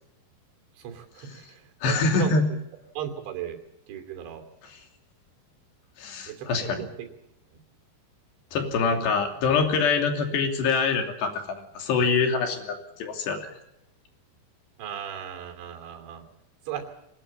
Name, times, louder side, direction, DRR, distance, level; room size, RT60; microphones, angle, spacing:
voice 1, 0.8-2.6 3.0-3.6 3.9-4.4 6.3-7.1 14.8-16.2 16.7-16.9, right 9 dB, 85° right, 5 dB, 5.2 m, -36 dB
voice 2, 1.8-2.5 4.7-4.8 6.0-6.9 8.5-13.4, left 4 dB, 70° left, 4 dB, 5.0 m, -25 dB
24.0 x 19.5 x 8.6 m, 0.83 s
omnidirectional pair, 5.1 m